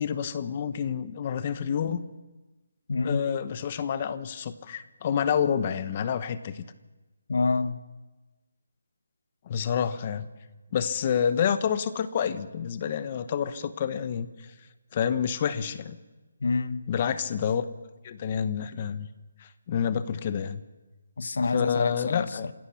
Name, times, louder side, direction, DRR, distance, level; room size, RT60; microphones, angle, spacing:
voice 1, 0.0-2.0 3.0-6.6 9.5-10.3 10.7-14.5 14.9-16.0 16.9-17.6 18.0-19.1 19.4-20.6 21.5-22.5, left 8 dB, 25° left, 0.9 m, -28 dB
voice 2, 2.9-3.3 7.3-7.8 16.4-16.9 21.2-22.5, left 4 dB, 65° left, 1.1 m, -27 dB
27.5 x 16.5 x 5.8 m
hypercardioid pair, 175°, 0 cm